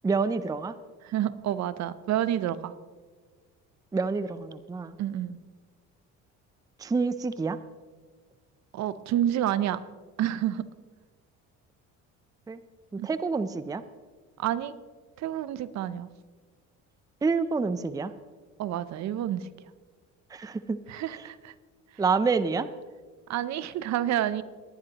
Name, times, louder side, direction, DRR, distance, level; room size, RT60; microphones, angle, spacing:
voice 1, 0.0-0.7 3.9-5.0 6.8-7.6 12.5-12.6 13.0-13.8 17.2-18.1 20.3-20.8 22.0-22.7, right 4 dB, 10° right, 13 dB, 0.5 m, -27 dB
voice 2, 1.0-2.7 5.0-5.4 8.7-9.8 10.2-10.7 13.0-13.1 14.4-14.7 15.2-16.1 18.6-19.5 20.9-21.5 23.3-24.4, right 11 dB, 60° right, 15 dB, 0.7 m, -29 dB
20.0 x 10.5 x 3.0 m, 1.5 s
cardioid pair, 95°, 31 cm